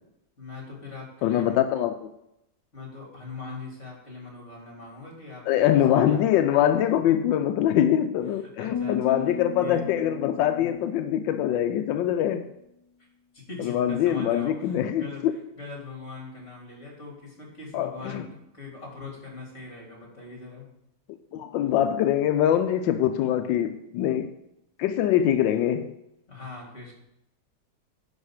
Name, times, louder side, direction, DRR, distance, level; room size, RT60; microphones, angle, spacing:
voice 1, 0.4-1.6 2.7-6.2 8.4-9.8 13.3-20.6 26.3-27.0, left 3 dB, 40° left, 3.5 m, -41 dB
voice 2, 1.2-2.1 5.5-12.5 13.6-15.3 17.7-18.2 21.3-24.3 24.8-25.9, left 11 dB, 90° left, 1.3 m, -23 dB
sound 1, 8.7-12.1, left 6 dB, 70° left, 1.3 m, -36 dB
10.5 x 4.9 x 6.4 m
omnidirectional pair, 2.0 m